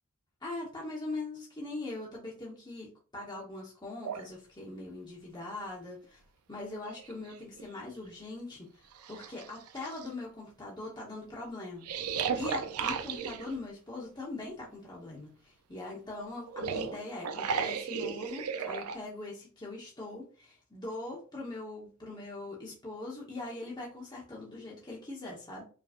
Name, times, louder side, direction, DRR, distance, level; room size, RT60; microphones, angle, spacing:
voice 1, 0.4-6.2 6.5-11.9 12.4-25.6, left 2 dB, 20° left, -4 dB, 1.0 m, -41 dB
sound 1, 4.0-4.3 6.0-6.1 6.6-7.6 8.2-8.3 8.9-10.1 11.8-13.6 16.4-19.0, right 6 dB, 85° right, 0.5 m, -35 dB
5.0 x 3.1 x 2.4 m, 0.37 s
head